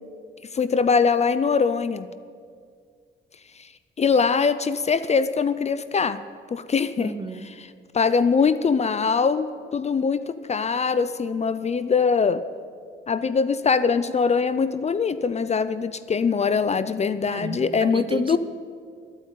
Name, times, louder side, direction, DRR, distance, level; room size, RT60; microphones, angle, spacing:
voice 1, 0.5-2.1 4.0-6.2 6.5-7.1 7.9-12.4 13.1-18.4, left 5 dB, 35° left, 14 dB, 0.5 m, -22 dB
voice 2, 7.0-7.5 17.3-18.4, right 4 dB, 25° right, 12 dB, 0.8 m, -33 dB
11.5 x 9.3 x 9.1 m, 2.1 s
cardioid pair, 90°, 20 cm